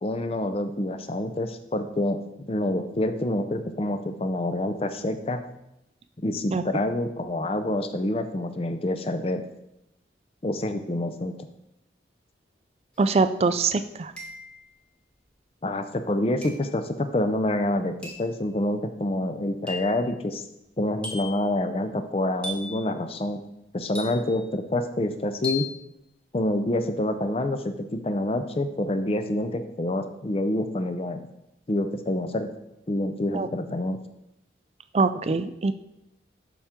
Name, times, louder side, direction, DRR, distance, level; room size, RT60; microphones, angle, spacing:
voice 1, 0.0-2.2 2.5-5.4 6.2-9.4 10.4-11.3 15.6-20.4 20.8-23.4 23.7-25.7 26.3-31.3 31.7-32.5 32.9-34.0, left 1 dB, 30° left, 9 dB, 0.5 m, -27 dB
sound 1, 13.0-13.1 14.2-14.7 16.4-16.8 18.0-18.3 19.7-20.0 21.0-21.5 22.4-22.8 24.0-24.5 25.4-25.8, left 3 dB, 5° left, 0.9 m, -36 dB
voice 2, 13.0-14.1 33.3-33.5 34.9-35.7, right 4 dB, 35° right, 11 dB, 0.3 m, -23 dB
7.0 x 5.7 x 3.7 m, 0.86 s
head